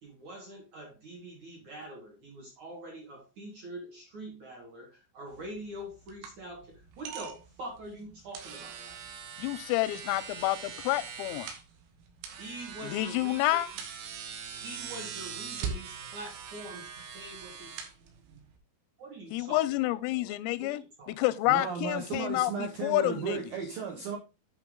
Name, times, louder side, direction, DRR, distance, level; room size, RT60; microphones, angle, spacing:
voice 1, 0.0-9.1 12.3-13.8 14.5-16.9 17.1-17.7 19.0-21.1, right 1 dB, 55° right, 2.1 m, -45 dB
sound 1, 5.3-18.6, right 6 dB, 90° right, 4.3 m, -42 dB
voice 2, 9.4-11.5 12.8-13.7 19.3-23.4, left 17 dB, 90° left, 3.4 m, -29 dB
voice 3, 21.5-24.2, right 6 dB, 70° right, 2.2 m, -35 dB
9.8 x 5.8 x 3.7 m
omnidirectional pair, 5.9 m